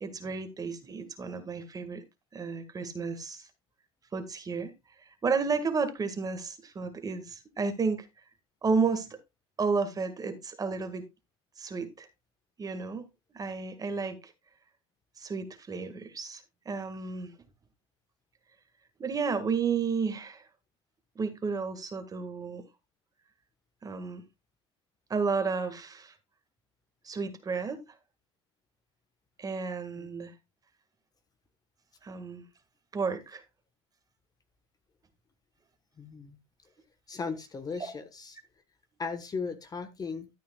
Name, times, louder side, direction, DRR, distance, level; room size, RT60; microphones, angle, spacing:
voice 1, 0.0-2.0 2.3-3.5 4.1-4.7 5.0-8.1 8.6-9.2 9.6-11.0 11.6-12.1 12.6-13.1 13.3-14.3 15.2-17.3 19.0-20.5 21.2-22.6 23.8-24.2 25.1-26.1 27.0-27.8 29.4-30.3 32.0-32.4 32.9-33.4 37.8-37.9, right 5 dB, 25° right, 1.8 m, -32 dB
voice 2, 36.0-36.4 37.1-38.4 39.0-40.3, left 5 dB, 25° left, 1.2 m, -37 dB
13.0 x 8.6 x 2.3 m
hypercardioid pair, 90°, 15 cm